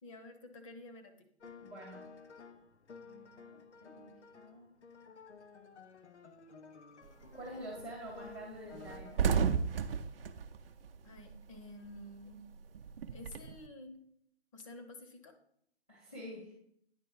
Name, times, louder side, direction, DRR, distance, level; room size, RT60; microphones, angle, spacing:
voice 1, 0.0-1.6 11.0-12.5 13.1-14.0 14.5-15.4, left 1 dB, 30° left, 6 dB, 0.8 m, -51 dB
sound 1, 1.4-9.2, left 5 dB, 85° left, 0.8 m, -54 dB
voice 2, 1.6-2.0 3.0-4.7 7.3-9.3 15.9-16.5, right 1 dB, 5° left, -10 dB, 0.4 m, -48 dB
sound 2, 7.1-7.4 7.8-7.9 8.2-8.3 8.7-11.7 11.9-13.6, right 6 dB, 60° right, 0.6 m, -33 dB
9.5 x 3.4 x 4.7 m, 0.71 s
hypercardioid pair, 150°, 33 cm